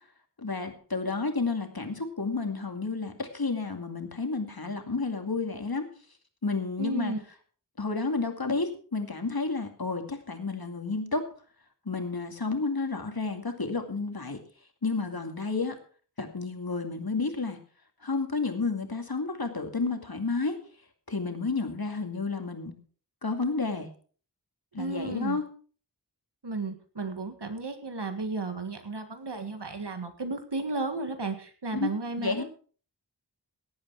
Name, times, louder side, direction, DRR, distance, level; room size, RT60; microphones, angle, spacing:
voice 1, 0.4-5.9 6.4-7.1 7.8-11.3 11.9-14.4 14.8-15.8 16.2-17.6 18.0-20.6 21.1-22.8 23.2-23.9 24.7-25.5 31.7-32.4, left 3 dB, 65° left, 5 dB, 2.4 m, -31 dB
voice 2, 6.8-7.2 24.8-25.4 26.4-32.4, right 3 dB, 85° right, 7 dB, 1.8 m, -33 dB
17.5 x 8.7 x 4.7 m, 0.42 s
wide cardioid pair, 45°, 40 cm